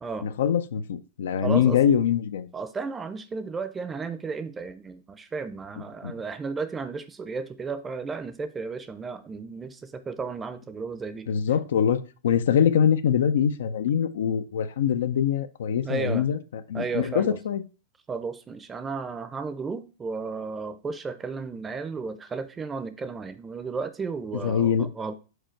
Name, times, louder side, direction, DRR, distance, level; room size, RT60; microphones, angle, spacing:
voice 1, 0.2-2.5 6.0-6.1 11.3-17.6 24.4-24.9, left 8 dB, 80° left, 0.5 m, -24 dB
voice 2, 1.4-1.8 2.5-11.3 15.8-16.3 16.7-17.4 18.1-25.1, right 4 dB, 15° right, 0.6 m, -33 dB
5.0 x 4.4 x 4.5 m
hypercardioid pair, 135°, 0 cm